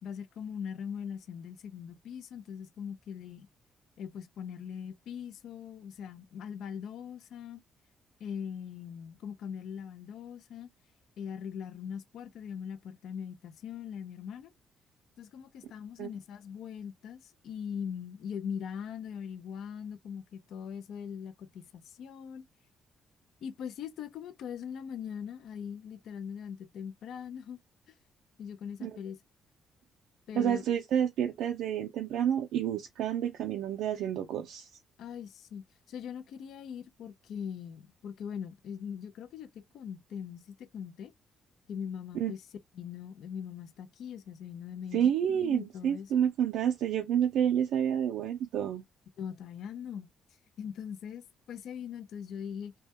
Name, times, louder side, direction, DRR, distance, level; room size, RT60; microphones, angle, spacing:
voice 1, 0.0-3.5 4.0-7.6 8.2-10.7 11.2-14.5 15.2-22.5 23.4-27.6 27.9-28.0 28.4-29.2 30.3-30.6 35.0-39.5 39.7-41.1 41.7-42.4 42.7-46.2 49.2-50.1 50.6-52.7, left 7 dB, 75° left, 0.4 m, -41 dB
voice 2, 30.4-34.7 42.1-42.3 44.9-48.8, right 9 dB, 85° right, 0.3 m, -29 dB
2.2 x 2.1 x 2.7 m
cardioid pair, 90°, 0 cm